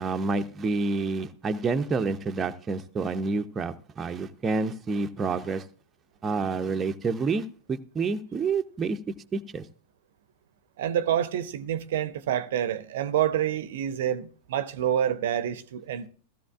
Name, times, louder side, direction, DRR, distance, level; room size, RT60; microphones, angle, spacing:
voice 1, 0.0-5.7 6.2-9.0 9.3-9.7, right 4 dB, 20° right, 0.6 m, -28 dB
voice 2, 10.8-16.1, right 10 dB, 55° right, 0.7 m, -27 dB
16.0 x 13.5 x 2.4 m
figure-of-eight pair, 90°, 0 cm